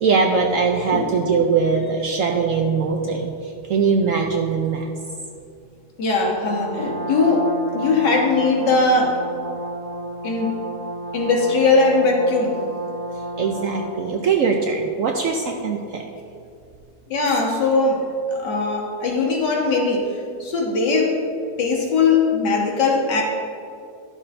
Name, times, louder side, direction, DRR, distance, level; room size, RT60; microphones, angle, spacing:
voice 1, 0.0-4.9 13.4-16.0, right 5 dB, 65° right, 2 dB, 0.8 m, -21 dB
voice 2, 6.0-9.2 10.2-10.6 11.1-12.5 17.1-18.0 18.3-20.1 20.4-21.1 21.6-23.2, left 3 dB, 80° left, -1 dB, 2.0 m, -20 dB
Brass instrument, 6.3-14.1, right 1 dB, 25° left, 0.9 m, -31 dB
11.5 x 6.5 x 3.3 m, 2.4 s
omnidirectional pair, 1.9 m